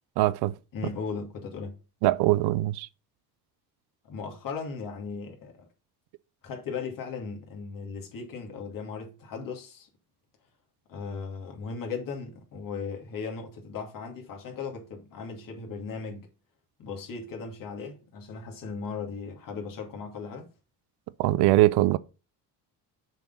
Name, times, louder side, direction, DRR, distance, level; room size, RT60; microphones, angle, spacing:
voice 1, 0.2-0.5 2.0-2.9 21.2-22.0, right 17 dB, 75° right, 0.6 m, -22 dB
voice 2, 0.7-1.7 4.1-5.6 6.4-9.9 10.9-16.3 16.8-20.5, left 5 dB, 55° left, 2.4 m, -37 dB
6.8 x 4.3 x 5.5 m
cardioid pair, 135°, 40 cm